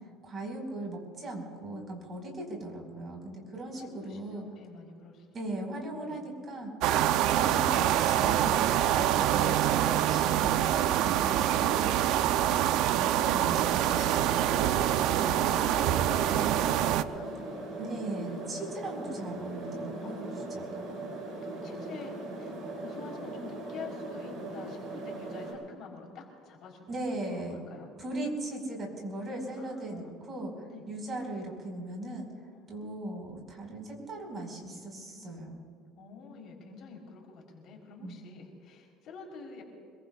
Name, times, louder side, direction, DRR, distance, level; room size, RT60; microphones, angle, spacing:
voice 1, 0.2-4.4 5.3-6.7 7.3-12.2 12.8-14.5 17.8-20.9 26.9-27.6 28.0-30.5 30.9-32.3 32.7-35.6 38.0-38.1, right 2 dB, 30° right, 1 dB, 5.1 m, -38 dB
voice 2, 3.5-5.3 5.6-6.2 12.5-13.2 14.7-17.4 18.5-18.8 19.8-20.5 21.2-27.9 29.6-30.2 30.7-30.8 32.5-32.7 34.5-35.5 36.0-39.6, left 4 dB, 50° left, 0 dB, 3.9 m, -48 dB
sound 1, 6.8-17.0, right 12 dB, 65° right, 0.6 m, -25 dB
sound 2, 13.1-25.5, right 2 dB, 45° right, 5.6 m, -39 dB
26.0 x 22.5 x 2.5 m, 2.3 s
cardioid pair, 145°, 0 cm